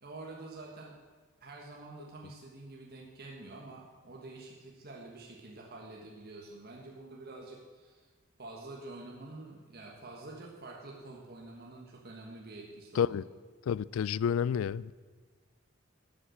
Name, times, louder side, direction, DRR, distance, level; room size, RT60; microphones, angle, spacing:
voice 1, 0.0-1.0 1.4-8.1 8.4-13.2, right 2 dB, 50° right, 1.5 m, -47 dB
voice 2, 13.7-14.9, left 8 dB, 70° left, 0.3 m, -29 dB
13.0 x 8.2 x 6.3 m
head